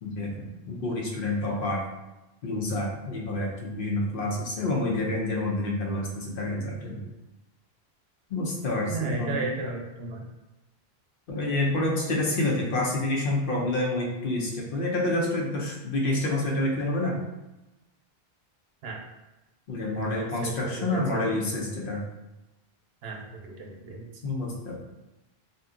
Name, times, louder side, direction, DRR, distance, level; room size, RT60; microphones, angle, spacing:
voice 1, 0.0-1.8 2.4-7.1 8.3-9.4 11.3-17.2 19.7-22.0 24.2-24.7, left 2 dB, 65° left, -1 dB, 0.8 m, -28 dB
voice 2, 8.9-10.3 18.8-19.0 19.9-21.3 23.0-24.1, right 3 dB, 75° right, 0 dB, 0.8 m, -34 dB
2.6 x 2.2 x 3.6 m, 1.0 s
omnidirectional pair, 1.0 m